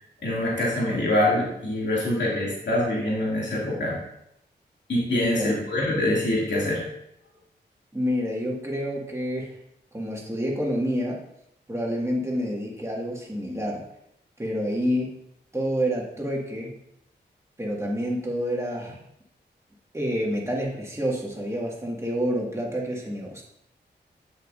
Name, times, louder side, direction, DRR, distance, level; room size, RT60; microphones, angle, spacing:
voice 1, 0.2-4.0 4.9-6.8, left 1 dB, 70° left, -6 dB, 2.6 m, -24 dB
voice 2, 5.1-5.6 7.9-9.6 9.9-11.2 11.7-13.9 14.4-15.2 15.5-16.7 17.6-19.0 19.9-23.4, equal, 15° right, -3 dB, 2.0 m, -28 dB
7.6 x 6.5 x 2.7 m, 0.78 s
cardioid pair, 50°, 19 cm